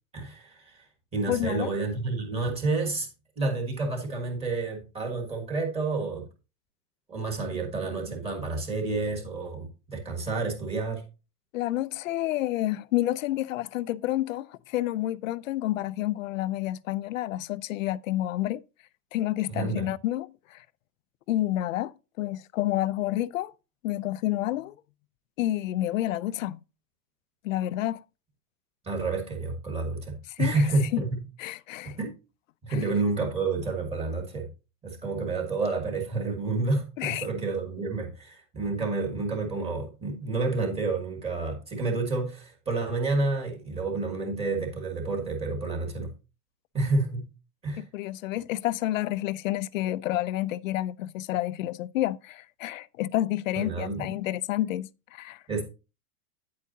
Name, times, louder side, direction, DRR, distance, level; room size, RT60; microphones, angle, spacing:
voice 1, 0.1-0.8 1.1-3.1 3.4-6.2 7.1-11.0 19.5-19.8 28.8-31.2 32.0-32.1 32.6-34.5 34.8-46.1 46.7-47.3 47.6-47.8 53.5-54.1 55.5-55.6, right 3 dB, 15° right, 1.6 m, -29 dB
voice 2, 1.3-1.7 11.5-18.6 19.1-20.6 21.3-23.5 23.8-24.7 25.4-26.6 27.4-28.0 30.3-30.7 30.9-31.0 31.4-32.0 32.7-32.8 37.0-37.3 47.8-55.4, left 14 dB, 60° left, 0.5 m, -29 dB
9.5 x 8.3 x 2.7 m
supercardioid pair, 180°, 45 cm